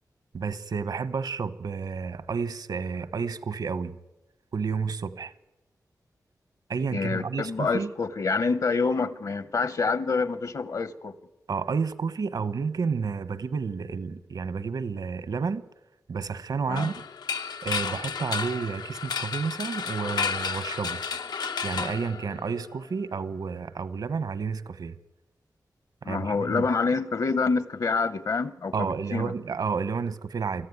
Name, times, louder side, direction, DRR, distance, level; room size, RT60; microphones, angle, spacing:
voice 1, 0.3-4.0 4.5-5.3 6.7-7.9 11.5-15.6 16.1-17.0 17.6-21.0 21.6-24.9 26.0-26.6 28.7-30.7, right 5 dB, 75° right, 1.1 m, -30 dB
voice 2, 6.9-11.2 16.7-16.9 26.0-29.3, left 4 dB, 65° left, 1.0 m, -27 dB
sound 1, 16.8-22.7, left 5 dB, 90° left, 0.7 m, -32 dB
24.5 x 14.5 x 9.5 m
wide cardioid pair, 120°, 7 cm